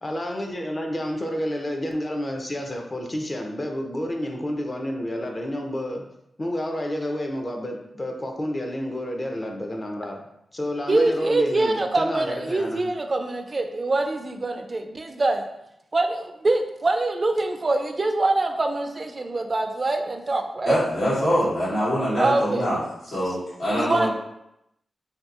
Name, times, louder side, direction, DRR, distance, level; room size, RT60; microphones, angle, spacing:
voice 1, 0.0-6.1 6.4-10.2 10.5-12.9, equal, 35° left, 2 dB, 0.5 m, -30 dB
voice 2, 10.9-15.4 15.9-20.8 22.2-22.7 23.7-24.1, right 2 dB, 45° right, 6 dB, 0.3 m, -24 dB
voice 3, 20.6-22.8 23.1-24.1, equal, 85° left, -9 dB, 1.3 m, -24 dB
2.7 x 2.5 x 2.4 m, 0.82 s
cardioid pair, 55°, 0 cm